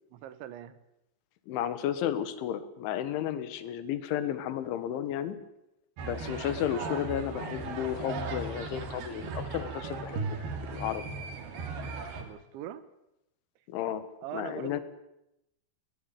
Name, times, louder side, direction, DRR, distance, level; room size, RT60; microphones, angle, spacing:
voice 1, 0.1-0.8 12.2-12.9 14.2-14.8, right 11 dB, 80° right, 14 dB, 3.6 m, -41 dB
voice 2, 1.5-5.4 6.0-10.4 10.7-11.1 13.7-14.1 14.3-14.8, left 10 dB, 85° left, 13 dB, 3.9 m, -33 dB
sound 1, 6.0-12.2, right 4 dB, 60° right, 4.2 m, -37 dB
21.5 x 18.5 x 9.0 m, 0.86 s
omnidirectional pair, 5.3 m